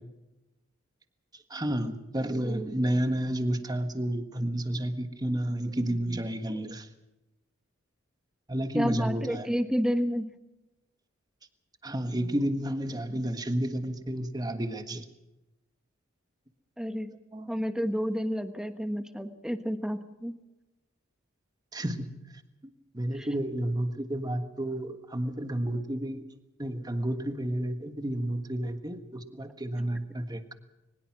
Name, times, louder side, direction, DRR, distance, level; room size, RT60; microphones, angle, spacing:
voice 1, 1.5-6.9 8.5-9.5 11.8-15.1 17.3-17.5 21.7-22.1 22.9-26.2 26.6-30.5, right 1 dB, 20° right, 8 dB, 1.5 m, -31 dB
voice 2, 8.7-10.3 16.8-17.1 17.5-20.4 23.1-23.3, equal, 5° right, 9 dB, 1.2 m, -30 dB
22.5 x 20.5 x 6.1 m, 0.99 s
head